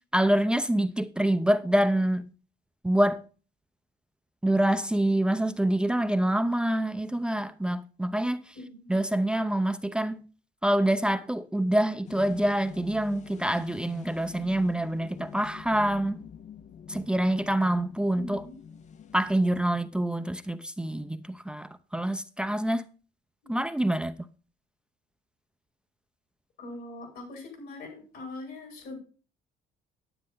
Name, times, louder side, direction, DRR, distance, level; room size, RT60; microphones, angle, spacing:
voice 1, 0.1-2.2 2.8-3.2 4.4-8.6 8.9-10.2 10.6-16.2 16.9-18.5 19.1-22.8 23.5-24.3, right 1 dB, 5° right, 0.6 m, -26 dB
voice 2, 8.5-9.0 18.1-18.7 23.4-23.7 26.6-29.0, left 2 dB, 75° left, 5.1 m, -42 dB
sound 1, 12.0-19.9, left 7 dB, 45° left, 0.6 m, -46 dB
9.8 x 8.9 x 3.8 m
cardioid pair, 110°, 17 cm